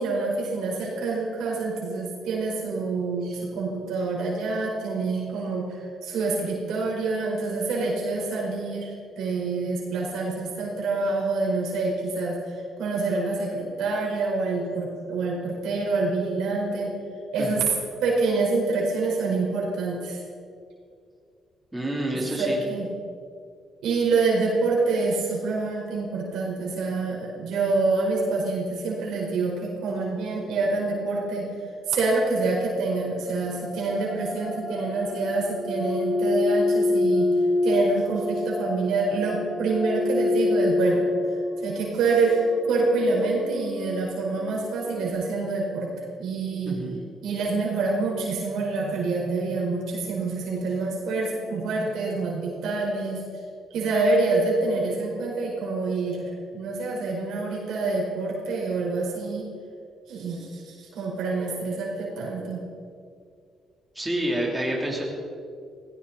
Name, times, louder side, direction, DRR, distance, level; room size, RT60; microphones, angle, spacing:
voice 1, 0.0-8.9 9.2-16.9 17.3-17.7 18.0-20.2 22.4-22.9 23.8-31.5 31.9-37.3 37.6-41.1 41.6-45.9 46.2-46.9 47.2-53.2 53.7-59.5 60.1-62.6, right 3 dB, 85° right, -2 dB, 4.9 m, -26 dB
voice 2, 21.7-22.6 46.7-47.0 64.0-65.0, right 1 dB, 10° right, -2 dB, 3.7 m, -28 dB
sound 1, 33.2-45.1, left 2 dB, 55° left, 4.8 m, -27 dB
18.0 x 17.0 x 4.3 m, 2.3 s
cardioid pair, 90°, 0 cm